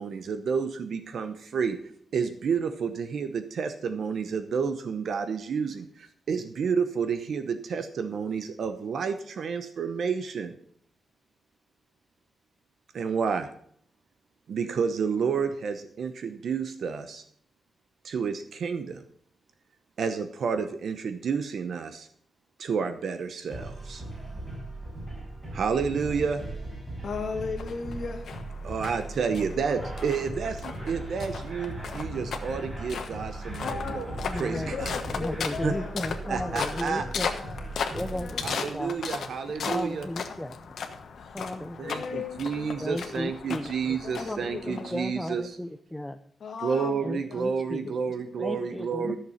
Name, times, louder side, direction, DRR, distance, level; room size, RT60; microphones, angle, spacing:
voice 1, 0.0-1.8 2.1-10.5 12.9-13.5 14.5-17.2 18.0-19.0 20.0-22.1 22.6-24.0 25.5-26.4 28.6-34.9 35.6-35.7 36.3-37.0 38.4-40.1 41.8-45.6 46.6-49.2, right 6 dB, 60° right, 9 dB, 0.8 m, -30 dB
sound 1, 23.5-38.5, right 2 dB, 25° right, 5.9 m, -38 dB
voice 2, 27.0-28.3 33.6-38.9 40.3-40.4 41.2-41.4 41.8-43.2 44.0-44.9 46.4-48.7 49.0-49.1, left 5 dB, 55° left, 2 dB, 1.6 m, -38 dB
sound 2, 27.6-45.3, left 6 dB, 70° left, 1.2 m, -37 dB
voice 3, 34.3-34.7 35.1-37.3 37.9-38.4 38.7-39.0 39.7-40.5 41.3-42.2 42.8-46.2 47.0-47.8 48.4-49.2, left 1 dB, 5° left, 7 dB, 0.5 m, -35 dB
13.5 x 6.8 x 5.7 m, 0.64 s
wide cardioid pair, 170°, 0 cm